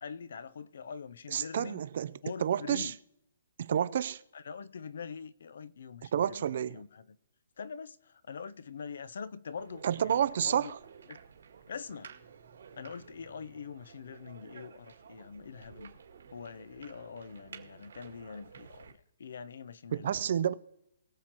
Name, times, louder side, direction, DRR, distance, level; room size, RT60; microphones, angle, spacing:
voice 1, 0.0-1.9 2.2-3.0 4.3-7.2 7.6-10.7 11.1-11.2 11.7-12.1 12.8-15.9 16.3-18.9 19.2-20.5, left 6 dB, 60° left, 0.5 m, -44 dB
voice 2, 1.3-2.9 3.6-4.2 6.1-6.8 9.8-10.8 19.9-20.5, right 9 dB, 40° right, 0.4 m, -30 dB
sound 1, 9.6-18.9, right 6 dB, 80° right, 2.1 m, -53 dB
22.0 x 7.6 x 2.9 m
hypercardioid pair, 175°, 0 cm